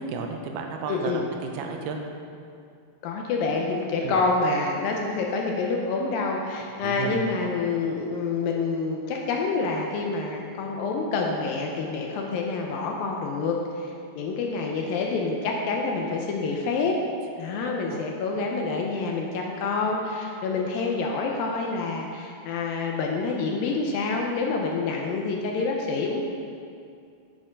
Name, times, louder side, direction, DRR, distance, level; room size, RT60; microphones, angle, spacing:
voice 1, 0.0-2.0 4.0-4.2 6.8-7.3 14.8-14.9 17.9-18.0, right 5 dB, 85° right, 3 dB, 2.6 m, -33 dB
voice 2, 0.9-1.3 3.0-17.0 17.4-26.2, left 4 dB, 80° left, 1 dB, 2.2 m, -27 dB
8.5 x 6.1 x 5.1 m, 2.4 s
omnidirectional pair, 4.5 m